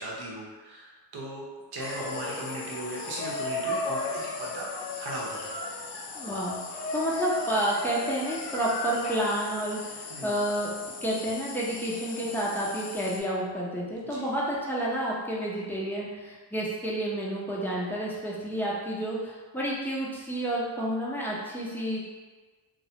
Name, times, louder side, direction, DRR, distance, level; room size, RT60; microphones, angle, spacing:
voice 1, 0.0-1.4 1.7-4.7 5.0-5.5 10.1-10.4 14.0-14.3, right 1 dB, 60° right, -3 dB, 0.8 m, -37 dB
sound 1, 1.8-13.2, left 2 dB, 65° left, 0.5 m, -36 dB
voice 2, 6.1-6.6 6.9-22.0, right 1 dB, 5° left, -6 dB, 0.6 m, -30 dB
2.2 x 2.0 x 2.8 m, 1.3 s
cardioid pair, 75°, 44 cm